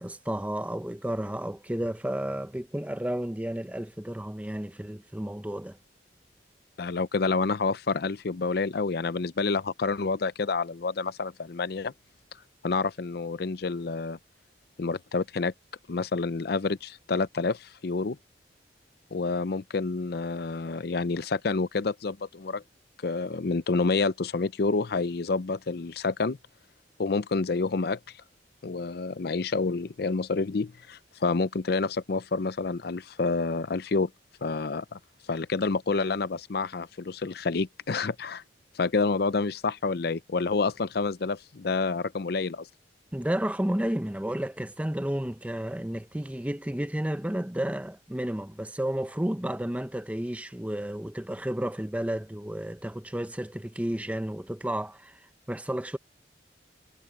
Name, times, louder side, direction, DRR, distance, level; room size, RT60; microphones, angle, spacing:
voice 1, 0.0-5.8 43.1-55.2 55.5-56.0, right 1 dB, 10° right, 0.7 m, -32 dB
voice 2, 6.8-11.9 12.6-14.2 14.8-15.5 15.9-18.2 19.1-22.6 23.0-26.4 27.0-28.0 28.6-34.1 34.4-35.0 35.3-38.4 38.8-42.7, left 4 dB, 60° left, 0.6 m, -28 dB
head